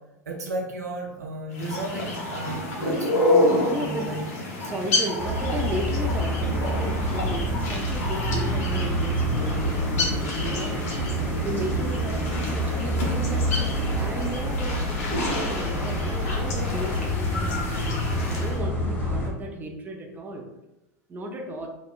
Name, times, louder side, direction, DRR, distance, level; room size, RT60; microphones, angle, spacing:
voice 1, 0.3-4.2, right 2 dB, 90° right, -1 dB, 0.6 m, -34 dB
sound 1, 1.5-18.6, left 2 dB, 70° left, 0.7 m, -29 dB
voice 2, 3.7-4.2 4.6-11.0 11.4-20.4 21.1-21.7, right 1 dB, 20° right, 2 dB, 0.5 m, -35 dB
sound 2, 5.2-19.3, equal, 20° left, 1.2 m, -27 dB
3.0 x 2.0 x 2.4 m, 0.96 s
hypercardioid pair, 85°, 9 cm